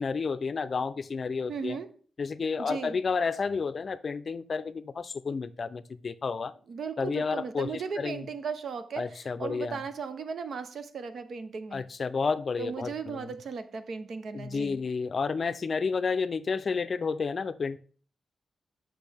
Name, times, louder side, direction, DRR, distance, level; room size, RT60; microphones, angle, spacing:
voice 1, 0.0-1.8 2.2-6.5 7.0-7.7 8.0-8.3 9.0-9.8 11.7-13.3 14.3-17.8, left 5 dB, 45° left, 0.4 m, -31 dB
voice 2, 1.5-1.9 2.6-3.0 6.7-11.8 12.6-14.8, right 5 dB, 70° right, 0.8 m, -36 dB
8.2 x 6.0 x 3.4 m
wide cardioid pair, 110°, 0 cm